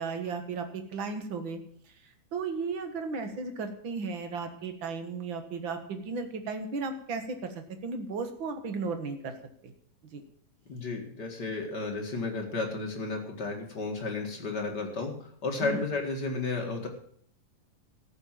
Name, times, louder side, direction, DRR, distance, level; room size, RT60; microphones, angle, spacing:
voice 1, 0.0-1.6 2.3-9.3 9.6-9.7 10.1-10.2 15.6-15.8, right 4 dB, 50° right, 7 dB, 1.5 m, -35 dB
voice 2, 10.7-16.9, left 3 dB, 40° left, 2 dB, 1.8 m, -33 dB
14.0 x 7.2 x 7.4 m, 0.62 s
omnidirectional pair, 3.8 m